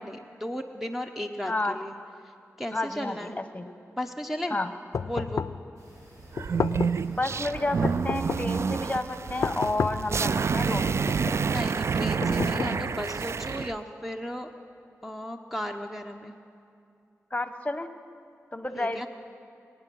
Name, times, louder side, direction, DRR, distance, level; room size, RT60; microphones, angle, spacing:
voice 1, 0.0-1.9 2.6-3.4 4.0-4.6 5.0-5.5 11.3-14.5 15.0-16.3 18.7-19.1, equal, 5° right, 2 dB, 0.8 m, -35 dB
voice 2, 2.7-3.3 3.5-3.7 4.5-4.7 7.1-11.2 17.3-17.9 18.5-19.1, left 2 dB, 25° left, 9 dB, 1.1 m, -31 dB
sound 1, 4.9-5.7 6.4-7.1 7.8-8.6 9.4-10.2 10.9-11.5 12.2-13.1, left 6 dB, 65° left, 0.4 m, -31 dB
sound 2, 5.8-10.9, equal, 80° right, 4.5 m, -52 dB
sound 3, 6.3-13.7, right 5 dB, 55° right, 0.3 m, -28 dB
22.0 x 9.0 x 6.2 m, 2.5 s
cardioid pair, 45°, 5 cm